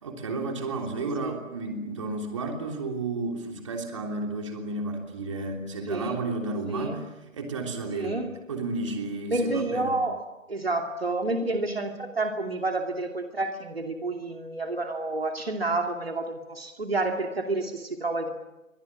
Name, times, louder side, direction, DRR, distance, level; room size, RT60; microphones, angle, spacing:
voice 1, 0.0-7.1 7.3-8.2 8.5-10.0, right 3 dB, 25° right, 3 dB, 3.3 m, -32 dB
voice 2, 6.7-7.0 8.0-8.3 9.3-10.2 10.5-18.3, right 2 dB, 50° right, 4 dB, 2.6 m, -29 dB
29.0 x 24.0 x 7.5 m, 0.99 s
figure-of-eight pair, 160°, 40 cm